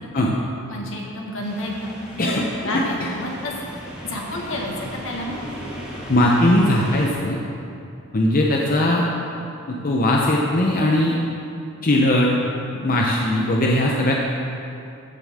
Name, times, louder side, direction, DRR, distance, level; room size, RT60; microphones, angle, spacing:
voice 1, 0.7-2.2 2.6-3.6 4.0-5.4, left 1 dB, 75° left, -1 dB, 1.5 m, -30 dB
sound 1, 1.4-7.1, equal, 5° right, 1.7 m, -36 dB
voice 2, 2.2-3.1 6.1-7.4 8.1-9.0 9.7-11.2 11.8-12.3 12.7-14.1, left 1 dB, 45° left, -2 dB, 0.7 m, -19 dB
14.0 x 7.1 x 3.6 m, 2.6 s
head